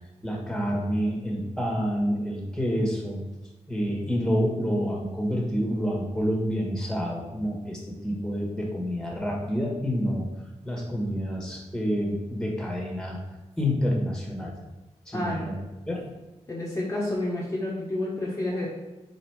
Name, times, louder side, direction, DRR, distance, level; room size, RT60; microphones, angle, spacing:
voice 1, 0.2-3.2 3.7-10.3 10.6-13.2 13.6-14.5 15.1-15.6 15.9-16.1, equal, 5° left, -1 dB, 1.5 m, -28 dB
voice 2, 15.1-15.5 16.5-18.7, left 1 dB, 25° left, -5 dB, 1.2 m, -29 dB
5.1 x 4.9 x 4.7 m, 1.1 s
wide cardioid pair, 155°, 12 cm